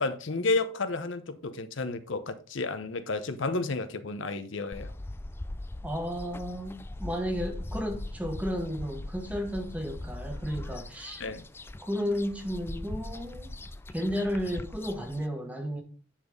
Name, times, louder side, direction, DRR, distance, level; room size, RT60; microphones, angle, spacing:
voice 1, 0.0-4.9 11.2-11.4, left 3 dB, 75° left, 0.8 m, -31 dB
sound 1, 4.7-15.3, left 1 dB, 10° left, 0.3 m, -40 dB
voice 2, 5.8-11.2 11.8-13.5 13.9-15.8, equal, 5° right, 1.3 m, -33 dB
9.9 x 4.2 x 5.1 m
head